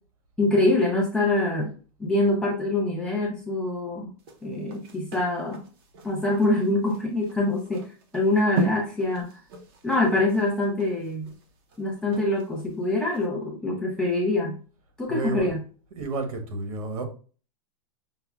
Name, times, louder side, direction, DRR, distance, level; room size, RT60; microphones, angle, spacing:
voice 1, 0.4-1.7 2.0-4.1 4.4-5.6 6.0-7.9 8.1-9.4 9.8-11.3 11.8-14.6 15.0-15.6, left 2 dB, 5° left, 0.4 m, -24 dB
sound 1, 4.2-12.7 13.1-13.3, right 4 dB, 45° right, 0.6 m, -36 dB
voice 2, 15.1-15.5 15.9-17.0, right 3 dB, 85° right, 1.0 m, -30 dB
5.5 x 2.0 x 2.3 m
supercardioid pair, 180°, 18 cm